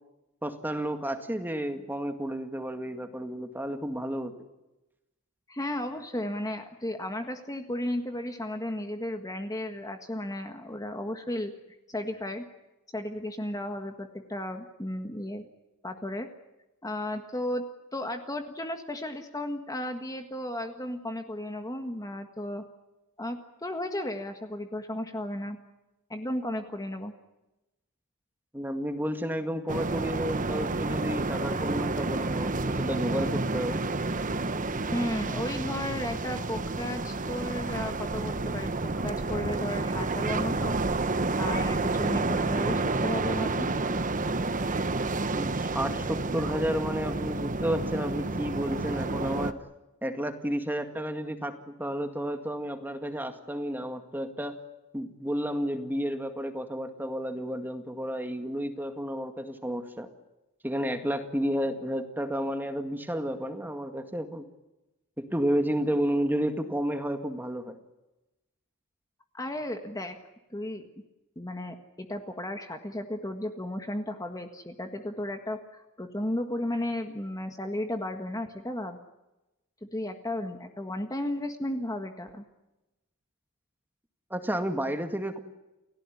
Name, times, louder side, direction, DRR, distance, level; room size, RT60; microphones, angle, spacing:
voice 1, 0.4-4.3 28.5-33.9 45.3-49.6 50.0-54.6 54.9-60.1 60.6-64.4 65.2-67.8 84.3-85.4, equal, 10° right, 7 dB, 2.0 m, -31 dB
voice 2, 5.5-11.5 11.9-12.4 12.9-15.5 15.8-16.3 16.8-17.6 17.9-22.6 23.2-25.6 26.1-27.1 34.9-40.8 41.4-43.7 69.3-70.2 70.5-70.8 71.3-79.0 79.9-82.4, left 1 dB, 15° left, 6 dB, 1.6 m, -34 dB
sound 1, 29.7-49.5, right 3 dB, 35° right, 1.1 m, -30 dB
29.5 x 17.0 x 9.9 m, 1.0 s
head